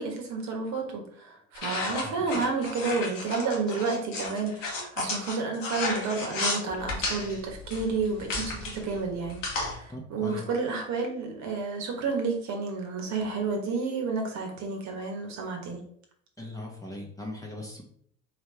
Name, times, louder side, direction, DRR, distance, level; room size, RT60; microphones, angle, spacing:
voice 1, 0.0-15.8, right 4 dB, 45° right, 3 dB, 1.3 m, -31 dB
sound 1, 1.5-9.7, left 2 dB, 75° left, 1.4 m, -33 dB
voice 2, 9.9-10.4 16.4-17.8, left 1 dB, 10° left, -1 dB, 1.1 m, -39 dB
4.5 x 3.3 x 3.3 m, 0.65 s
figure-of-eight pair, 70°, 38 cm